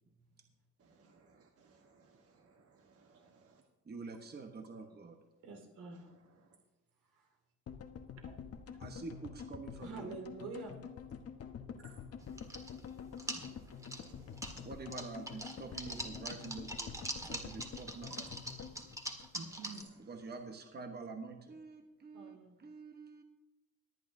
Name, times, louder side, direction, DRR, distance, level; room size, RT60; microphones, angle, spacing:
voice 1, 0.8-3.6 11.8-12.0 13.2-13.7 14.1-14.7 18.1-18.2 19.3-20.0, right 4 dB, 50° right, 2 dB, 1.3 m, -56 dB
voice 2, 3.8-5.2 8.8-10.1 14.6-18.2 19.4-19.5 20.0-23.2, right 4 dB, 35° right, 5 dB, 1.2 m, -47 dB
voice 3, 5.4-6.1 7.1-7.3 8.2-8.3 9.8-10.8 22.1-22.6, right 4 dB, 80° right, 1 dB, 2.7 m, -47 dB
sound 1, 7.7-19.9 20.1-20.2 20.4-20.5, left 7 dB, 50° left, 1.1 m, -48 dB
sound 2, 12.2-12.9 13.2-14.6 14.9-19.8, right 1 dB, 10° right, 1.7 m, -43 dB
22.5 x 8.6 x 2.7 m, 1.1 s
cardioid pair, 90°, 30 cm